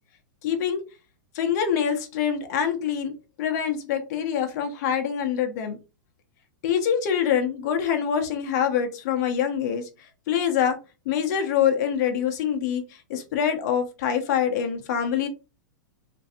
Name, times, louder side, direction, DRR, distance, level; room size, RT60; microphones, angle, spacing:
voice 1, 0.4-0.8 1.3-3.1 3.4-5.8 6.6-9.9 10.3-10.8 11.1-12.8 13.1-15.3, left 8 dB, 50° left, 5 dB, 0.7 m, -25 dB
3.0 x 2.5 x 2.7 m, 0.29 s
hypercardioid pair, 135°, 11 cm